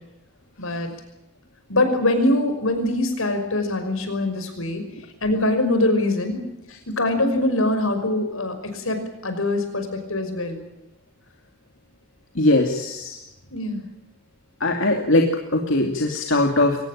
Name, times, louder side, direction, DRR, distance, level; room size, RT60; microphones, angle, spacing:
voice 1, 0.6-0.9 1.7-4.8 5.2-6.4 6.9-10.6 13.5-13.8, left 1 dB, 80° left, 8 dB, 5.7 m, -23 dB
voice 2, 12.4-13.2 14.6-16.8, left 2 dB, 65° left, 2 dB, 2.6 m, -20 dB
23.5 x 19.0 x 8.9 m, 0.92 s
head